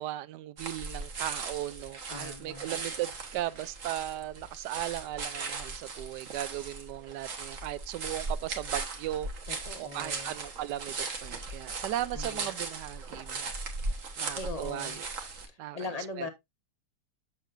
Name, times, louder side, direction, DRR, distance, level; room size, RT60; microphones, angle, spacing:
voice 1, 0.0-9.3 9.8-10.9 11.2-13.5 14.2-15.1 15.6-16.3, right 14 dB, 85° right, 1.2 m, -37 dB
sound 1, 0.6-15.5, right 3 dB, 50° right, 1.6 m, -38 dB
voice 2, 2.1-2.7 9.5-10.3 12.1-12.5 14.3-15.0 15.7-16.3, left 3 dB, 25° left, 1.0 m, -39 dB
7.4 x 7.1 x 2.5 m
omnidirectional pair, 1.8 m